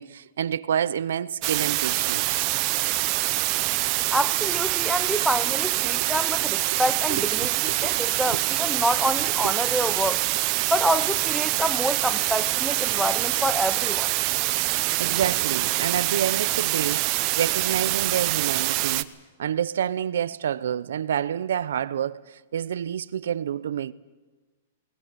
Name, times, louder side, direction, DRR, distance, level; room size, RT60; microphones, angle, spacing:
voice 1, 0.0-2.4 6.0-6.1 6.7-6.8 7.1-7.9 9.4-9.6 15.0-19.1 19.4-23.9, right 9 dB, 80° right, 0.7 m, -28 dB
sound 1, 1.4-19.0, right 20 dB, 35° right, 0.8 m, -25 dB
voice 2, 4.1-10.2 10.7-14.1, equal, ahead, 0.7 m, -27 dB
20.0 x 18.5 x 9.1 m
hypercardioid pair, 155°, 0 cm